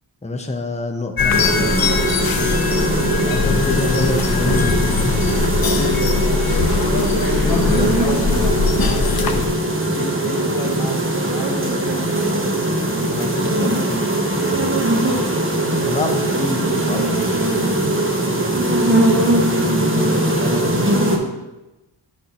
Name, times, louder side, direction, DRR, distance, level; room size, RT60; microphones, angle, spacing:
voice 1, 0.2-1.7 3.2-5.2 7.2-8.5 15.8-17.7, left 2 dB, 15° left, 3 dB, 0.7 m, -27 dB
sound 1, 1.2-9.5, left 5 dB, 50° left, 0.7 m, -21 dB
sound 2, 1.3-21.2, right 1 dB, 25° right, 1.0 m, -20 dB
voice 2, 2.4-3.3 5.6-7.0 9.2-12.3 13.0-14.1 19.6-21.4, left 3 dB, 90° left, 2 dB, 1.2 m, -32 dB
8.6 x 6.3 x 2.9 m, 1.0 s
wide cardioid pair, 70°, 47 cm